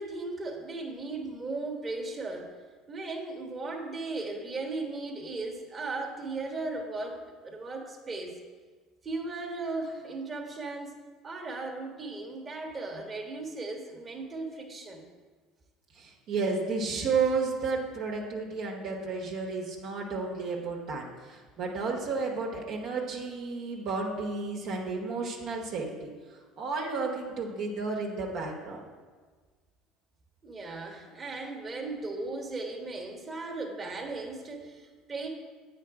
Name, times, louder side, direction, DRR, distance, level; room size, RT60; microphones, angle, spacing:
voice 1, 0.0-2.5 2.9-8.4 9.0-15.1 30.4-35.3, right 3 dB, 30° right, 1 dB, 1.3 m, -37 dB
voice 2, 15.9-26.1 26.6-28.8, right 4 dB, 60° right, -1 dB, 1.2 m, -32 dB
8.5 x 4.6 x 4.8 m, 1.4 s
hypercardioid pair, 70°, 0 cm